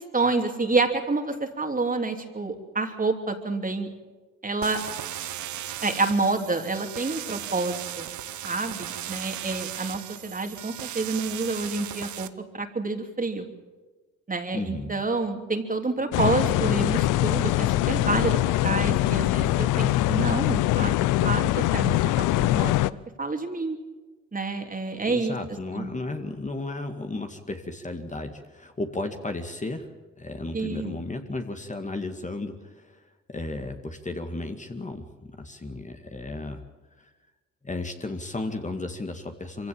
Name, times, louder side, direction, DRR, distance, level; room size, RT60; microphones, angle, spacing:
voice 1, 0.0-3.9 4.4-4.8 5.8-8.1 8.4-12.3 12.5-13.5 14.3-22.8 23.2-23.8 24.3-25.4 25.7-25.9 30.5-30.9, right 3 dB, 25° right, 5 dB, 3.0 m, -28 dB
sound 1, 4.6-12.3, right 12 dB, 70° right, 1.1 m, -36 dB
voice 2, 14.5-15.0 25.1-29.9 30.2-36.7 37.0-37.1 37.6-39.7, left 2 dB, 25° left, 5 dB, 2.2 m, -34 dB
sound 2, 16.1-22.9, left 16 dB, 80° left, 0.6 m, -23 dB
24.0 x 16.0 x 8.8 m, 1.3 s
supercardioid pair, 65°, 31 cm